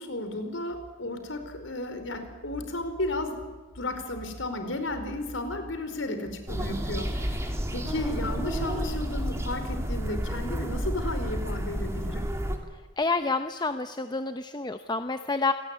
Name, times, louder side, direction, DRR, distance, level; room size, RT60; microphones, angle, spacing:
voice 1, 0.0-3.4 3.7-12.3, left 1 dB, 85° left, 8 dB, 4.9 m, -33 dB
sound 1, 6.5-12.6, equal, 15° right, 3.0 m, -31 dB
voice 2, 13.0-15.5, left 3 dB, 20° left, 9 dB, 0.8 m, -28 dB
28.5 x 18.5 x 9.8 m, 1.3 s
head